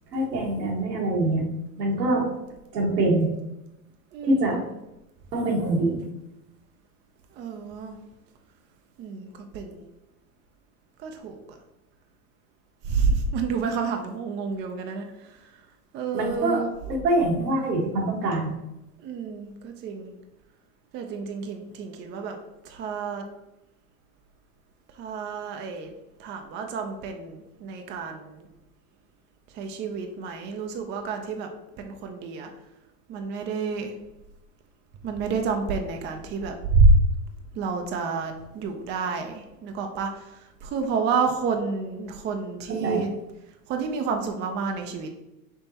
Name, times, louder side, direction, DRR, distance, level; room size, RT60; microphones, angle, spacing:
voice 1, 0.1-1.5 1.8-2.3 2.7-3.3 4.2-4.6 5.3-6.0 16.1-16.6 16.9-18.5 42.8-43.0, right 1 dB, 80° right, -1 dB, 1.5 m, -24 dB
voice 2, 4.1-4.6 7.3-8.0 9.0-9.9 11.0-11.6 12.8-15.4 15.9-16.7 19.0-20.1 20.9-22.4 22.6-23.2 25.0-25.9 26.2-28.5 29.5-31.5 31.8-32.5 33.1-33.9 35.0-36.9 37.5-43.2 43.7-45.1, right 4 dB, 25° right, 5 dB, 0.4 m, -28 dB
5.6 x 2.9 x 2.8 m, 0.93 s
hypercardioid pair, 95°, 49 cm